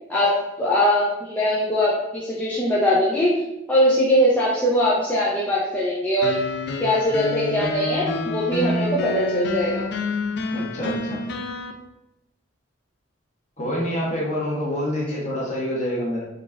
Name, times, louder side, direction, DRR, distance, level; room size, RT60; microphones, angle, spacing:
voice 1, 0.1-3.3 3.7-6.4 6.8-9.8, equal, 10° left, -8 dB, 0.5 m, -21 dB
sound 1, 6.2-11.7, left 2 dB, 60° left, 0.4 m, -28 dB
voice 2, 10.5-11.2 13.6-16.2, equal, 40° left, -5 dB, 1.1 m, -26 dB
4.0 x 2.5 x 3.4 m, 0.91 s
head